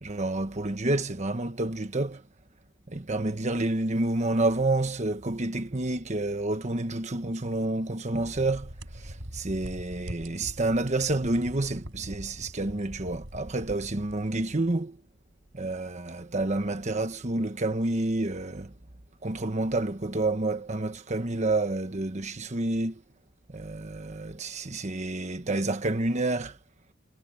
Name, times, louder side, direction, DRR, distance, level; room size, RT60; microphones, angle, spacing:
voice 1, 0.0-2.2 2.9-15.0 15.5-18.7 19.2-23.0 23.5-26.6, right 2 dB, 35° right, 1.2 m, -29 dB
sound 1, 8.3-14.7, equal, 65° right, 5.3 m, -43 dB
head